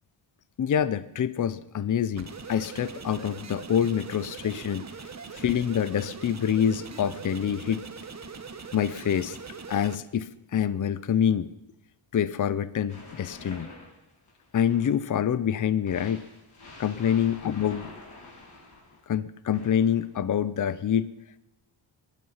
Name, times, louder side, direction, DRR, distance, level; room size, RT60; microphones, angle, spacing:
voice 1, 0.6-4.8 5.3-7.8 8.7-9.4 9.7-11.5 12.1-13.7 14.5-16.2 16.8-17.9 19.1-21.1, left 9 dB, 40° left, 16 dB, 0.6 m, -26 dB
sound 1, 2.1-10.0, right 5 dB, 35° right, 1.0 m, -41 dB
sound 2, 12.9-15.1 15.9-19.0 19.5-20.1, left 2 dB, 55° left, 6.1 m, -47 dB
21.5 x 11.0 x 5.6 m, 0.88 s
wide cardioid pair, 135°, 49 cm